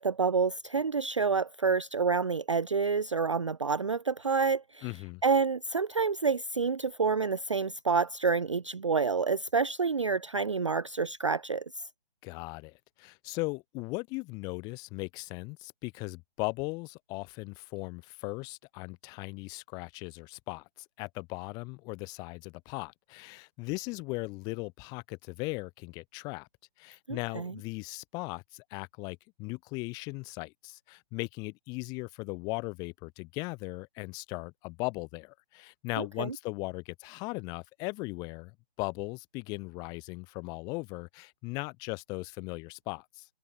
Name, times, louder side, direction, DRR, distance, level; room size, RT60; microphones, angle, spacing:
voice 1, 0.0-4.9 5.2-11.6 27.1-27.5 36.0-36.4, right 5 dB, 30° right, 0.5 m, -28 dB
voice 2, 4.8-5.2 12.2-20.6 21.0-26.5 26.8-43.3, left 27 dB, 10° left, 2.3 m, -38 dB
hypercardioid pair, 165°, 31 cm